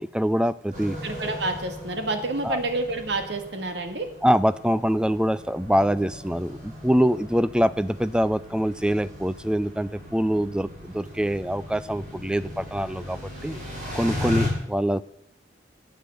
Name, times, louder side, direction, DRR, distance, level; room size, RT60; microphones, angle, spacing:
voice 1, 0.0-1.0 2.4-2.6 4.2-13.6 13.9-15.0, equal, 5° right, 16 dB, 0.4 m, -24 dB
sound 1, 0.7-14.5, left 1 dB, 40° right, 5.7 m, -37 dB
voice 2, 1.0-4.1, right 2 dB, 70° right, 7 dB, 1.8 m, -28 dB
12.0 x 8.1 x 7.8 m, 0.73 s
head